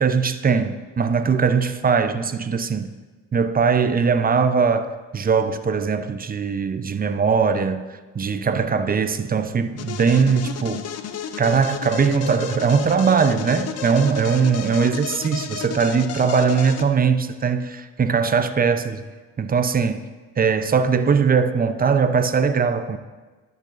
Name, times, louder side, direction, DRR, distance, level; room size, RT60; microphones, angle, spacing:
voice 1, 0.0-2.9 3.3-10.9 11.4-19.0 19.4-20.1 20.4-23.0, right 5 dB, 25° right, 0.5 m, -20 dB
sound 1, 9.8-16.8, left 8 dB, 45° left, 0.6 m, -32 dB
12.5 x 6.5 x 2.5 m
supercardioid pair, 75°, 38 cm